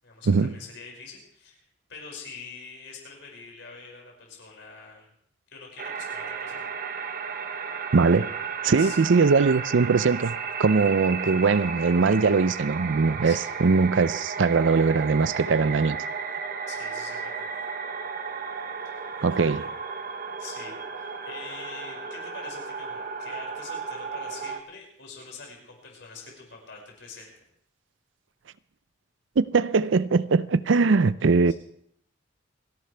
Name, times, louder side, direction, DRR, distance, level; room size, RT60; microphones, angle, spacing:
voice 1, 0.0-1.6 1.9-5.1 5.5-6.7 8.6-9.5 13.2-13.6 16.7-17.5 18.9-19.7 20.1-27.3 31.5-31.6, left 4 dB, 65° left, 6.0 m, -45 dB
sound 1, 5.8-24.6, right 5 dB, 45° right, 0.9 m, -34 dB
voice 2, 7.9-8.3 8.6-16.0 19.2-19.6 29.4-31.5, right 4 dB, 75° right, 0.5 m, -21 dB
29.0 x 11.5 x 3.4 m
head